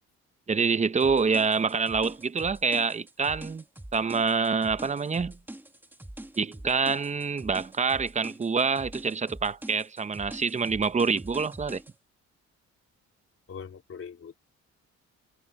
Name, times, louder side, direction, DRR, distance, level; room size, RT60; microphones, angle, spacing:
voice 1, 0.5-3.6 3.9-5.4 6.4-11.8, right 5 dB, 25° right, 0.9 m, -26 dB
sound 1, 1.0-11.9, right 1 dB, 5° right, 1.5 m, -44 dB
voice 2, 13.5-14.3, left 6 dB, 45° left, 3.5 m, -41 dB
cardioid pair, 90°, 30 cm